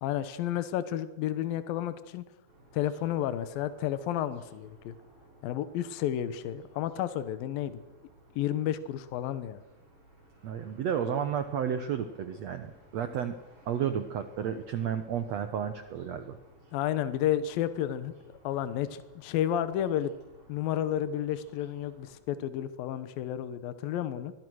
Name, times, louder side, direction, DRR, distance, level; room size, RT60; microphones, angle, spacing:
voice 1, 0.0-2.2 2.7-4.9 5.4-7.8 8.4-9.6 16.7-18.1 18.4-20.1 20.5-24.3, left 11 dB, 80° left, 13 dB, 2.8 m, -31 dB
sound 1, 2.5-22.2, right 1 dB, 35° right, 7.6 m, -59 dB
voice 2, 10.4-13.4 13.7-16.4, right 8 dB, 65° right, 9 dB, 1.8 m, -32 dB
24.5 x 21.5 x 6.4 m, 1.0 s
omnidirectional pair, 4.2 m